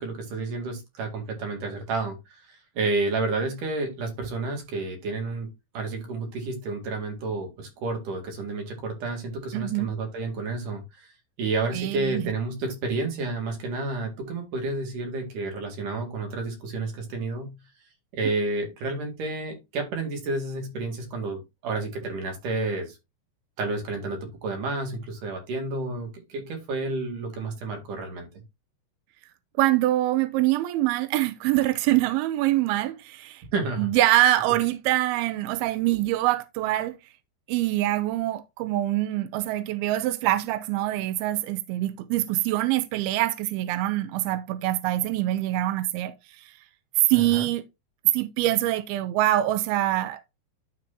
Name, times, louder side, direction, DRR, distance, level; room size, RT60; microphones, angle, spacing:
voice 1, 0.0-5.5 5.7-11.1 11.4-17.6 18.1-23.0 23.6-28.3 33.5-33.9 47.1-47.5, right 3 dB, 55° right, 3.3 m, -30 dB
voice 2, 9.5-9.9 11.7-12.2 29.6-33.4 33.8-37.0 37.5-46.5 47.1-47.7 48.1-50.2, right 15 dB, 85° right, 2.2 m, -24 dB
12.0 x 4.7 x 2.7 m
omnidirectional pair, 4.9 m